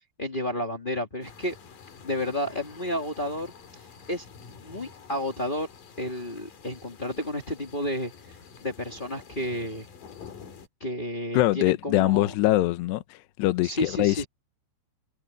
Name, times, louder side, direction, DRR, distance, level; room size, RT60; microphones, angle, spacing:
voice 1, 0.2-1.5 2.0-3.5 4.1-4.2 4.6-5.7 6.0-8.1 8.6-9.9 10.8-12.3 13.6-14.2, left 1 dB, 25° left, 1.1 m, -31 dB
sound 1, 1.2-10.7, left 6 dB, 55° left, 4.0 m, -48 dB
voice 2, 11.3-14.3, left 17 dB, 80° left, 2.9 m, -23 dB
omnidirectional pair, 5.0 m